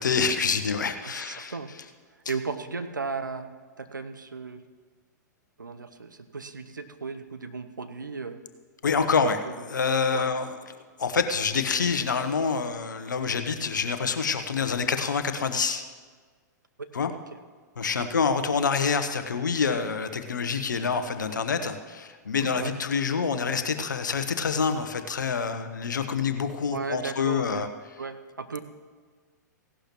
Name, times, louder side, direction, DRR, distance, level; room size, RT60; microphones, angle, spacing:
voice 1, 0.0-1.5 8.8-10.5 11.0-15.8 16.9-17.1 17.8-27.7, left 5 dB, 75° left, 9 dB, 1.0 m, -27 dB
voice 2, 1.0-1.7 2.3-3.5 3.8-4.6 5.6-8.4 9.2-9.3 9.6-9.7 10.1-10.3 16.8-17.2 18.0-18.1 22.4-22.7 26.7-27.6 28.0-28.6, right 4 dB, 90° right, 10 dB, 0.9 m, -35 dB
17.0 x 11.5 x 3.1 m, 1.5 s
figure-of-eight pair, 110°, 10 cm